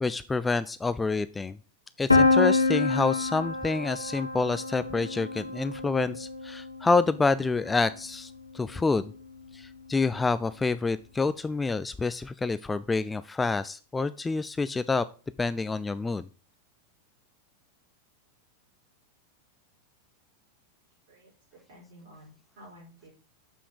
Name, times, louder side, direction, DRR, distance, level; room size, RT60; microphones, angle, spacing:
voice 1, 0.0-1.6 2.0-9.1 9.5-15.1 15.4-16.3, left 3 dB, 10° left, 14 dB, 0.4 m, -28 dB
Piano, 2.1-7.9, left 3 dB, 85° left, 1.0 m, -27 dB
voice 2, 21.7-23.1, equal, 55° right, -6 dB, 5.1 m, -51 dB
7.2 x 5.7 x 6.3 m, 0.37 s
figure-of-eight pair, 90°, 0 cm